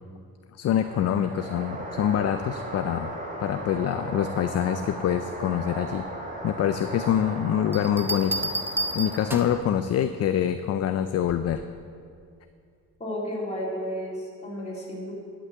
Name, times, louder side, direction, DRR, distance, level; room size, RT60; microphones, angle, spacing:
voice 1, 0.6-3.1 3.4-6.0 6.4-8.5 8.9-11.6, left 10 dB, 50° left, 10 dB, 0.5 m, -25 dB
sound 1, 0.6-9.6, right 2 dB, 25° right, 1.9 m, -37 dB
sound 2, 7.7-9.7 11.3-11.6, right 2 dB, 5° right, 0.8 m, -31 dB
voice 2, 13.0-15.1, equal, 20° left, -5 dB, 3.4 m, -32 dB
11.0 x 6.1 x 8.1 m, 2.3 s
cardioid pair, 110°, 33 cm